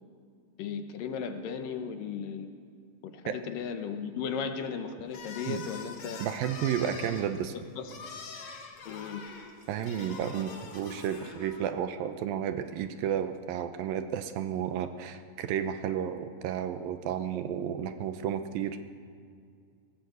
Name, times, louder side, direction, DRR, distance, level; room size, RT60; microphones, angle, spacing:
voice 1, 0.6-2.5 3.0-6.3 7.8-8.0 8.9-9.3, left 6 dB, 70° left, 7 dB, 2.6 m, -36 dB
sound 1, 5.1-11.7, left 4 dB, 50° left, 2.9 m, -44 dB
voice 2, 6.2-7.5 9.7-18.8, right 9 dB, 75° right, 9 dB, 2.5 m, -32 dB
20.0 x 18.0 x 8.0 m, 2.3 s
omnidirectional pair, 4.4 m